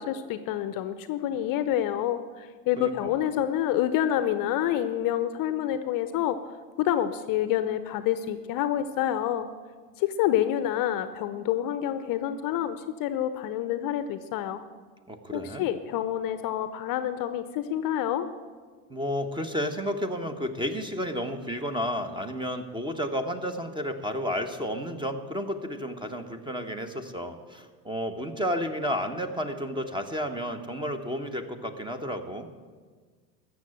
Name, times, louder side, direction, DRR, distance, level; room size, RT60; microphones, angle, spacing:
voice 1, 0.0-6.4 6.8-9.5 10.0-14.6 15.3-18.3, left 11 dB, 45° left, 12 dB, 0.8 m, -28 dB
voice 2, 2.8-3.1 15.1-15.7 18.9-32.5, equal, 10° right, 8 dB, 1.1 m, -32 dB
14.0 x 7.1 x 8.9 m, 1.5 s
hypercardioid pair, 75°, 49 cm